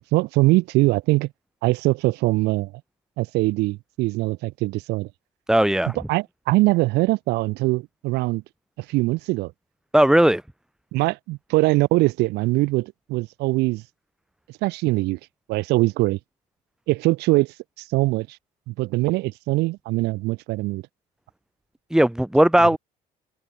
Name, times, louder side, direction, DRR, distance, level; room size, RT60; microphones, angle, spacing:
voice 1, 0.1-1.3 1.6-2.7 3.2-5.1 6.1-8.4 8.8-9.5 10.9-13.8 14.6-15.2 15.5-16.2 16.9-17.5 17.9-18.3 18.7-20.8, right 21 dB, 85° right, 1.7 m, -22 dB
voice 2, 5.5-6.0 9.9-10.4 21.9-22.8, right 1 dB, 5° right, 2.6 m, -17 dB
cardioid pair, 115°, 17 cm